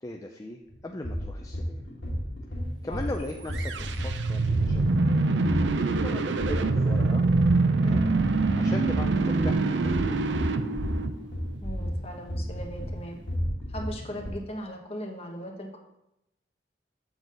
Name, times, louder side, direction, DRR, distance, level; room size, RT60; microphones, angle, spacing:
voice 1, 0.0-1.8 2.8-5.4 5.9-8.1 8.6-10.2, left 2 dB, 20° left, 2 dB, 0.4 m, -39 dB
sound 1, 0.7-14.3, equal, 80° left, 2.0 m, -33 dB
sound 2, 3.5-11.6, right 3 dB, 85° right, 0.5 m, -25 dB
voice 2, 11.6-13.2 13.7-15.8, equal, 35° left, 1 dB, 1.2 m, -38 dB
7.3 x 3.9 x 6.5 m, 0.85 s
head